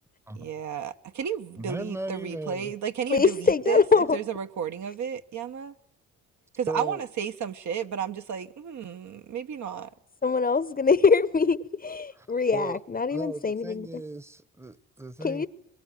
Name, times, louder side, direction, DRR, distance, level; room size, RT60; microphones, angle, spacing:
voice 1, 0.4-5.7 6.6-9.9, right 8 dB, 55° right, 1.3 m, -33 dB
voice 2, 1.6-2.7 6.7-7.0 12.1-12.3 12.5-12.8 13.1-15.5, right 2 dB, 10° right, 1.1 m, -36 dB
voice 3, 3.1-4.2 10.2-14.0 15.2-15.5, left 5 dB, 25° left, 0.9 m, -23 dB
23.0 x 22.0 x 9.3 m
cardioid pair, 95°, 34 cm